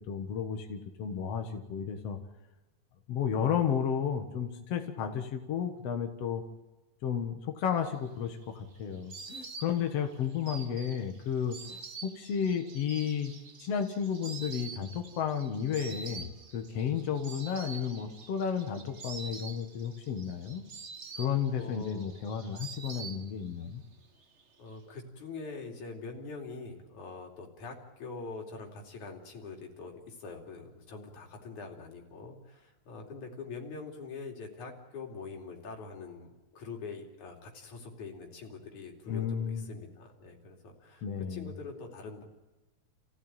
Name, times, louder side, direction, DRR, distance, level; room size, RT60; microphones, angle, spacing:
voice 1, 0.0-2.2 3.1-6.4 7.0-13.3 13.6-20.7 21.2-23.8 39.1-39.7 41.0-41.5, left 8 dB, 60° left, 5 dB, 2.4 m, -33 dB
Insect, 7.9-23.7 23.9-24.7, right 5 dB, 85° right, 0.6 m, -47 dB
voice 2, 21.5-22.2 24.6-42.2, left 4 dB, 80° left, 1 dB, 4.4 m, -44 dB
28.0 x 16.0 x 9.0 m, 1.1 s
omnidirectional pair, 3.3 m